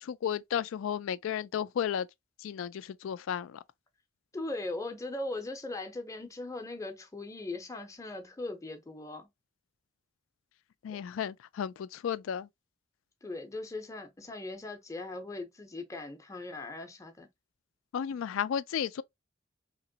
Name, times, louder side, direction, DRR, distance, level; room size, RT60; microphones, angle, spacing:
voice 1, 0.0-2.1 2.4-3.6 10.8-12.5 17.9-19.0, left 8 dB, 80° left, 0.3 m, -33 dB
voice 2, 4.3-9.3 13.2-17.3, left 2 dB, 15° left, 0.6 m, -39 dB
2.9 x 2.9 x 2.7 m
head